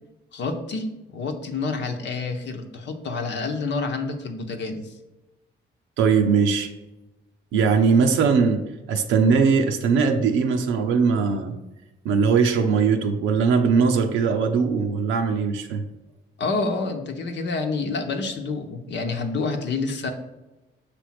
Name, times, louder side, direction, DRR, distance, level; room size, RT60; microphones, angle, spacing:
voice 1, 0.3-0.9 1.1-4.9 16.4-20.1, left 3 dB, 65° left, 5 dB, 0.9 m, -28 dB
voice 2, 6.0-6.7 7.5-11.5 12.0-15.8, right 5 dB, 85° right, 4 dB, 0.7 m, -20 dB
6.0 x 3.4 x 5.8 m, 1.0 s
cardioid pair, 90°, 20 cm